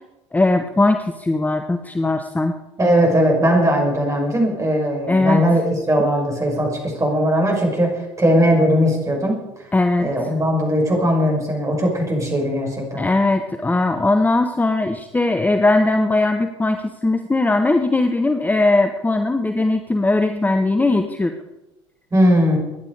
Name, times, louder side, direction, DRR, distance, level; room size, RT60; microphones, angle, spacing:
voice 1, 0.3-2.6 5.1-5.4 6.0-6.1 9.7-10.3 13.0-21.4, left 2 dB, 10° left, 7 dB, 1.0 m, -19 dB
voice 2, 2.8-5.6 5.9-9.4 10.0-13.1 22.1-22.6, equal, 20° right, 0 dB, 6.4 m, -18 dB
24.0 x 10.5 x 4.9 m, 0.98 s
figure-of-eight pair, 60°, 15 cm